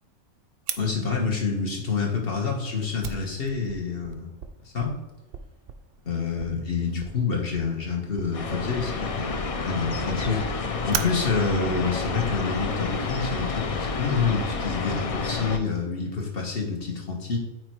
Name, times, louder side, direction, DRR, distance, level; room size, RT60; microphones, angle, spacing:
Fire, 0.7-13.2, right 8 dB, 60° right, 0.6 m, -40 dB
voice 1, 0.8-4.3 4.7-4.9 6.0-10.4 10.9-17.4, left 5 dB, 45° left, 0 dB, 1.5 m, -27 dB
sound 1, 8.3-15.6, left 4 dB, 65° left, 0.3 m, -30 dB
8.8 x 3.2 x 4.6 m, 1.1 s
omnidirectional pair, 1.5 m